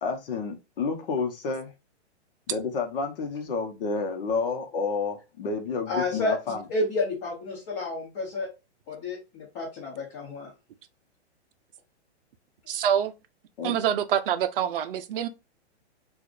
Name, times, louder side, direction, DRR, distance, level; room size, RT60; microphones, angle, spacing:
voice 1, 0.0-1.7 2.5-6.6 13.6-13.7, left 4 dB, 55° left, 1.1 m, -30 dB
voice 2, 5.9-8.5 8.9-10.5, left 2 dB, 30° left, 1.3 m, -30 dB
voice 3, 12.7-13.1 13.6-15.3, right 9 dB, 55° right, 0.6 m, -26 dB
4.6 x 2.5 x 2.6 m
hypercardioid pair, 155°, 34 cm